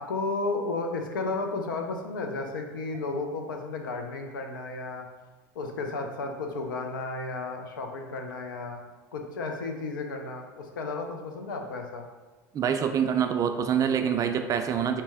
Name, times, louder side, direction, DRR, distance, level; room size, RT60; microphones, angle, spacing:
voice 1, 0.0-5.1 5.5-8.8 9.1-12.0, left 3 dB, 85° left, 4 dB, 0.5 m, -33 dB
voice 2, 12.5-15.0, right 8 dB, 35° right, 6 dB, 0.4 m, -25 dB
4.2 x 2.1 x 3.4 m, 1.2 s
hypercardioid pair, 85°, 10 cm